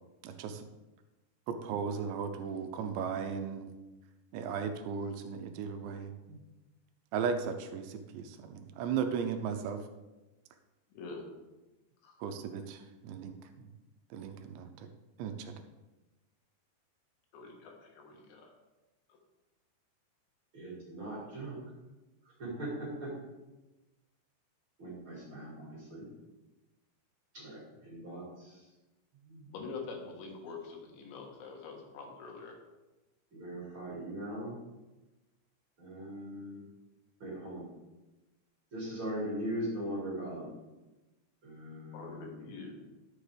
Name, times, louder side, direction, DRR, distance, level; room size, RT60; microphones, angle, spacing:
voice 1, 0.2-0.7 1.5-3.7 4.3-6.4 7.1-9.8 12.2-13.7 14.1-14.9 15.2-15.5, right 6 dB, 85° right, 7 dB, 2.9 m, -36 dB
voice 2, 17.3-18.5 29.5-32.5 41.9-42.7, left 4 dB, 85° left, 1 dB, 3.8 m, -45 dB
voice 3, 20.5-21.6 22.4-23.1 24.8-26.1 27.3-28.6 29.3-29.5 33.3-34.6 35.8-36.6 37.2-37.6 38.7-40.5 41.4-42.3, right 1 dB, 35° right, -5 dB, 2.4 m, -40 dB
11.5 x 7.0 x 3.4 m, 1.1 s
omnidirectional pair, 5.1 m